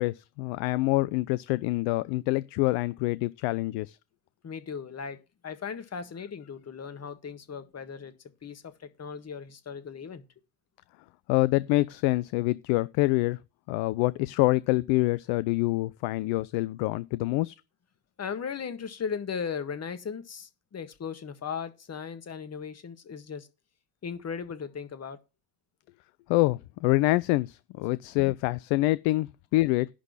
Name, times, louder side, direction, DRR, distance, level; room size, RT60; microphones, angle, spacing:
voice 1, 0.0-4.0 11.3-13.4 13.7-17.5 26.3-29.9, left 19 dB, 60° left, 0.6 m, -26 dB
voice 2, 4.4-5.2 5.4-8.1 8.4-10.2 18.2-23.5 24.0-25.2, left 6 dB, 30° left, 1.7 m, -37 dB
11.0 x 3.9 x 7.5 m
hypercardioid pair, 65°, 50 cm